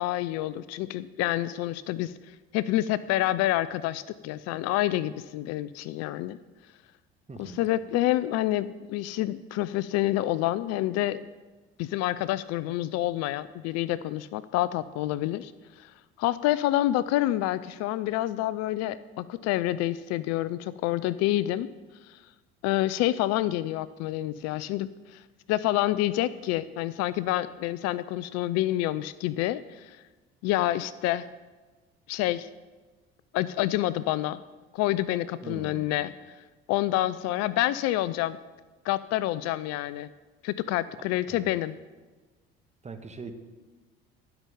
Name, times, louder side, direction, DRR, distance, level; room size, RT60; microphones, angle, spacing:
voice 1, 0.0-2.1 2.5-6.4 7.4-11.3 11.8-15.5 15.8-15.9 16.2-21.7 22.1-22.2 22.6-25.2 25.5-30.0 30.4-31.3 32.1-32.5 33.3-34.4 34.7-36.1 36.7-38.4 38.8-40.1 40.4-41.8, left 15 dB, 60° left, 17 dB, 0.5 m, -28 dB
voice 2, 7.3-7.7 35.4-35.9 41.0-41.6 42.8-43.3, right 4 dB, 20° right, 7 dB, 1.3 m, -42 dB
12.5 x 5.8 x 6.9 m, 1.3 s
hypercardioid pair, 65°, 30 cm